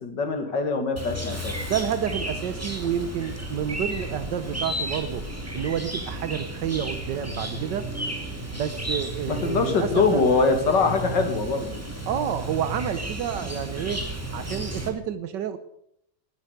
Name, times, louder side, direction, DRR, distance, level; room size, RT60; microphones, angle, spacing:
voice 1, 0.0-1.5 9.3-11.8, left 4 dB, 90° left, 6 dB, 3.0 m, -23 dB
Chirp tweet, 1.0-14.9, right 1 dB, 10° right, 2.5 m, -33 dB
voice 2, 1.6-5.2 5.5-7.9 8.5-10.2 12.1-14.1 14.3-15.6, right 9 dB, 85° right, 11 dB, 1.6 m, -29 dB
18.5 x 10.5 x 6.7 m, 0.75 s
omnidirectional pair, 1.8 m